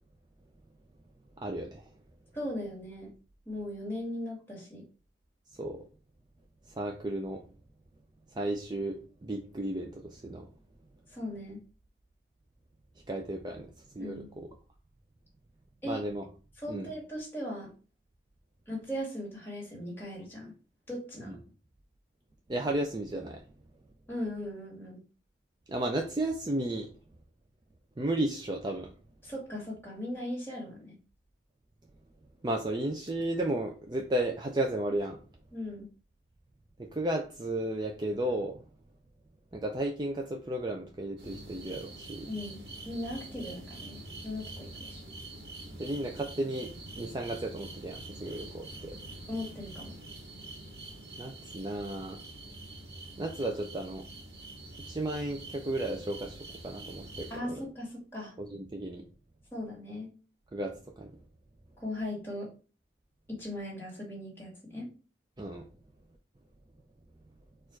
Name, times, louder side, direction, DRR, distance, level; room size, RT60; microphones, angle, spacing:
voice 1, 1.4-1.9 5.6-5.9 6.8-7.4 8.3-10.5 13.1-13.7 13.9-14.5 15.8-16.2 16.7-16.9 21.3-21.4 22.5-23.4 25.7-26.9 28.0-28.9 32.4-35.2 36.8-38.6 39.5-42.3 45.8-46.7 47.0-49.0 51.2-52.2 53.2-54.0 54.9-56.4 56.6-57.7 58.4-59.0 60.5-61.1 65.4-65.7, right 1 dB, 25° right, 3 dB, 0.4 m, -34 dB
voice 2, 2.3-3.1 3.5-4.8 11.1-11.6 14.0-14.3 15.8-16.0 16.6-17.7 18.7-20.5 20.9-21.4 24.1-25.0 29.2-31.0 35.5-35.9 42.3-42.6 42.8-45.0 49.3-49.9 57.3-58.3 59.5-60.1 61.8-62.5 63.3-64.9, left 1 dB, 15° left, -4 dB, 1.9 m, -38 dB
sound 1, 41.2-57.4, right 2 dB, 70° right, 1.2 m, -45 dB
4.4 x 2.5 x 4.5 m, 0.35 s
head